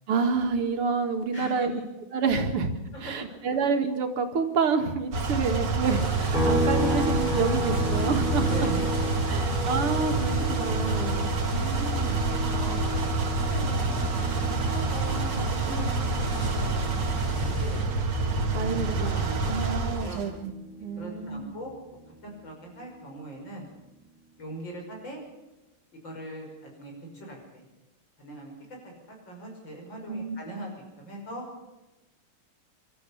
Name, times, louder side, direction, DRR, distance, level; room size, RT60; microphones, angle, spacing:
voice 1, 0.1-1.7 2.1-2.7 3.0-8.7 9.3-12.2 18.5-20.5 20.8-21.5 30.1-30.4, right 5 dB, 90° right, 5 dB, 2.7 m, -28 dB
voice 2, 1.3-1.8 2.9-3.0 5.3-5.4 8.5-9.4 12.3-13.1 13.5-16.9 17.2-17.9 18.7-19.7 20.0-20.2 21.0-22.0 22.2-23.7 24.4-25.2 26.0-27.6 28.2-28.5 28.8-28.9 29.3-30.7 31.0-31.4, right 1 dB, 60° left, 0 dB, 6.5 m, -40 dB
sound 1, 5.1-20.2, right 3 dB, 55° right, 2.5 m, -27 dB
sound 2, 5.8-17.8, left 1 dB, 80° left, 4.4 m, -40 dB
sound 3, 6.3-19.9 20.2-22.4, equal, 20° left, 5.1 m, -34 dB
26.0 x 12.5 x 8.5 m, 1.0 s
omnidirectional pair, 2.4 m